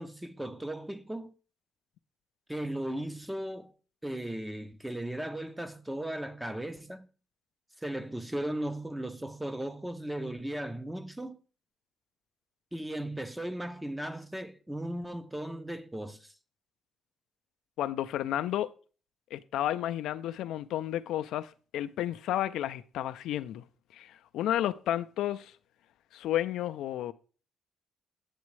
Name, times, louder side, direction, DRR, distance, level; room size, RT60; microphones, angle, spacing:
voice 1, 0.0-1.3 2.5-3.7 4.0-7.1 7.8-11.4 12.7-16.3, right 1 dB, 5° right, 0.6 m, -37 dB
voice 2, 17.8-18.7 19.3-23.6 23.9-25.5 26.1-27.1, left 12 dB, 85° left, 0.3 m, -32 dB
8.2 x 7.0 x 3.1 m
cardioid pair, 90°, 0 cm